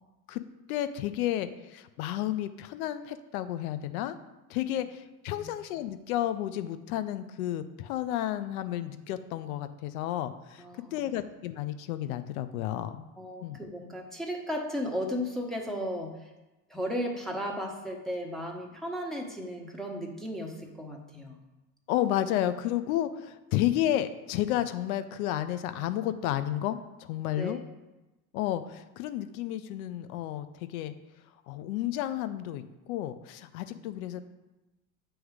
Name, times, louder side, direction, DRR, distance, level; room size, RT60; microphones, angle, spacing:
voice 1, 0.7-4.2 4.5-10.6 10.9-13.0 13.4-13.6 21.9-27.6 28.3-30.9 31.5-34.2, left 12 dB, 70° left, 11 dB, 0.6 m, -31 dB
voice 2, 10.6-11.0 13.2-16.3 16.7-21.4 27.3-27.6, equal, ahead, -1 dB, 1.1 m, -35 dB
8.0 x 3.1 x 4.8 m, 1.1 s
hypercardioid pair, 85°, 45 cm